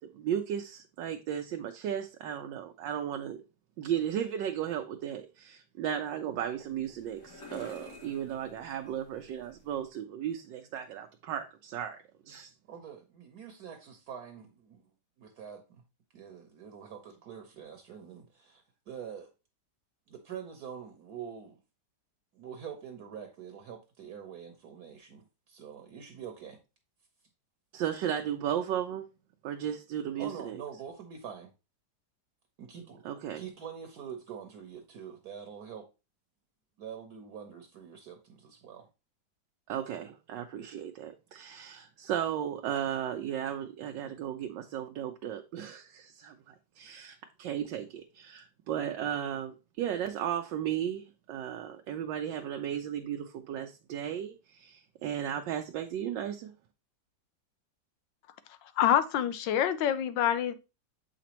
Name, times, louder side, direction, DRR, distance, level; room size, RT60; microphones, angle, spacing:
voice 1, 0.1-3.4 3.8-12.0 12.3-12.5 27.7-29.0 29.4-30.6 33.0-33.4 39.7-56.5, right 10 dB, 85° right, 1.3 m, -35 dB
sound 1, 6.3-9.9, left 3 dB, 65° left, 2.7 m, -51 dB
voice 2, 12.7-14.9 15.2-15.8 16.1-19.3 20.1-21.6 22.3-26.6 30.2-31.5 32.6-33.0 33.3-35.9 36.8-38.9, right 8 dB, 65° right, 1.3 m, -45 dB
voice 3, 58.8-60.5, left 10 dB, 90° left, 1.4 m, -26 dB
7.4 x 5.0 x 2.9 m
omnidirectional pair, 1.9 m